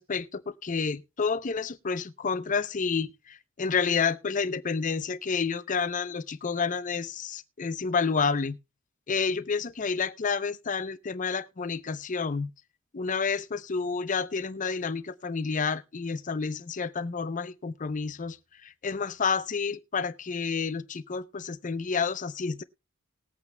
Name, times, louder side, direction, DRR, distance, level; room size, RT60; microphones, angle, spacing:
voice 1, 0.0-8.6 9.1-12.5 12.9-18.4 18.6-22.6, left 5 dB, 40° left, 0.6 m, -30 dB
20.0 x 8.3 x 2.2 m
head